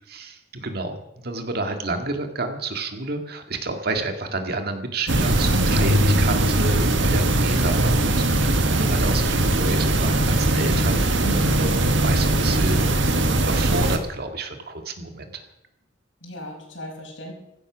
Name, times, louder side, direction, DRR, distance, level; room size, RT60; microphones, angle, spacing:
voice 1, 0.1-1.0 1.2-11.0 11.6-11.7 12.0-12.9 13.4-15.5, right 2 dB, 55° right, 6 dB, 2.0 m, -29 dB
sound 1, 5.1-14.0, right 1 dB, 75° right, 1.7 m, -20 dB
voice 2, 11.2-11.7 16.2-17.3, right 1 dB, 90° left, 0 dB, 5.7 m, -35 dB
16.0 x 14.0 x 6.2 m, 0.87 s
head